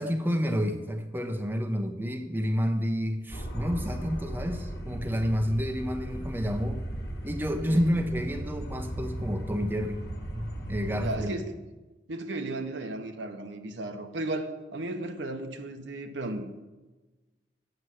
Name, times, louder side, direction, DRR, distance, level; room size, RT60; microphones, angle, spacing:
voice 1, 0.0-6.8 7.2-10.1 10.3-11.3, equal, 10° right, 6 dB, 0.6 m, -29 dB
sound 1, 3.3-11.3, right 1 dB, 60° left, 1.5 m, -37 dB
voice 2, 11.0-11.6 12.1-16.6, right 2 dB, 75° right, 6 dB, 1.0 m, -35 dB
8.0 x 6.7 x 7.6 m, 1.2 s
head